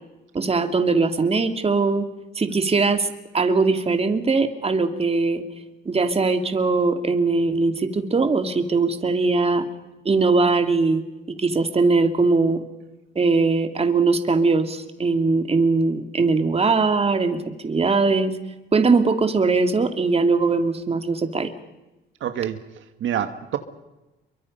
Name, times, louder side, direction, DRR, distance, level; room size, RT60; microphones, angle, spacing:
voice 1, 0.3-2.1 2.4-3.1 3.3-5.4 5.9-9.7 10.0-11.0 11.4-12.6 13.2-18.3 18.7-21.5, right 3 dB, 30° right, 7 dB, 2.5 m, -20 dB
voice 2, 22.2-23.6, right 10 dB, 75° right, 8 dB, 1.6 m, -27 dB
27.5 x 23.5 x 5.5 m, 1.0 s
cardioid pair, 90°, 20 cm